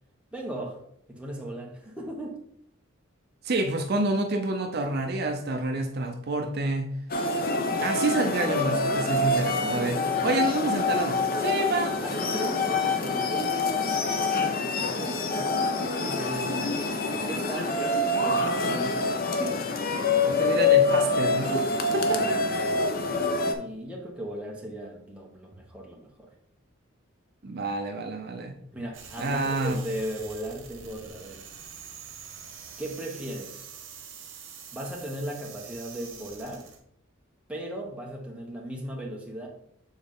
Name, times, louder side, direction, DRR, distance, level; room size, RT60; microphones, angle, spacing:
voice 1, 0.3-0.8 1.1-2.4 12.0-17.8 18.2-19.7 21.8-26.3 28.7-31.4 32.8-33.7 34.7-36.7 37.5-39.5, right 1 dB, 5° right, -2 dB, 1.0 m, -37 dB
voice 2, 3.4-6.9 7.8-12.0 20.3-22.6 27.4-28.5 29.2-29.8, right 2 dB, 50° right, 5 dB, 0.6 m, -28 dB
sound 1, 7.1-23.5, left 3 dB, 45° left, 0.6 m, -26 dB
sound 2, 28.9-36.8, right 6 dB, 75° right, 1.2 m, -45 dB
7.3 x 4.0 x 3.6 m, 0.71 s
head